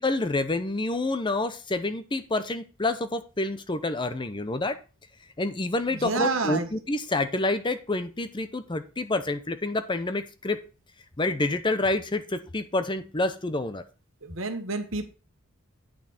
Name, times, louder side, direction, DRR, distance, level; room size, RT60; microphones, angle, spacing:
voice 1, 0.0-4.8 5.4-10.6 11.2-13.8, left 2 dB, 20° left, 0.7 m, -28 dB
voice 2, 5.9-6.7 14.2-15.0, right 3 dB, 70° right, 1.4 m, -29 dB
8.8 x 6.0 x 4.2 m
head